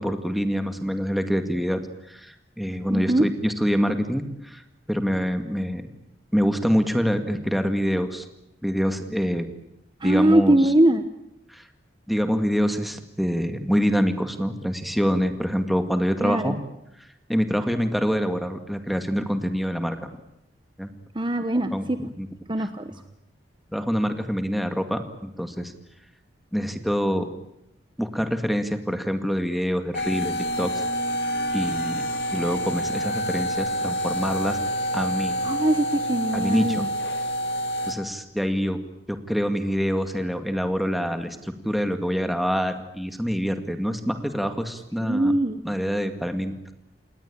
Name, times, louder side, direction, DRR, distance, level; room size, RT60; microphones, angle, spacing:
voice 1, 0.0-1.8 2.1-4.6 4.9-5.9 6.3-8.3 8.6-9.5 10.0-10.6 11.5-11.6 12.1-16.5 17.3-20.0 20.8-20.9 21.7-21.8 22.2-22.3 22.6-22.7 23.7-25.7 26.5-27.3 28.0-30.8 31.5-32.1 32.3-34.6 34.9-35.4 36.3-36.9 37.9-38.8 39.1-45.3 45.6-46.7, equal, ahead, 7 dB, 2.0 m, -25 dB
voice 2, 2.9-3.3 10.0-11.1 16.2-16.5 21.1-22.0 22.5-22.9 35.4-36.9 45.0-45.6, right 1 dB, 25° right, 9 dB, 1.0 m, -21 dB
sound 1, 29.9-38.0, equal, 65° left, 2.1 m, -27 dB
28.0 x 20.0 x 8.8 m, 0.83 s
head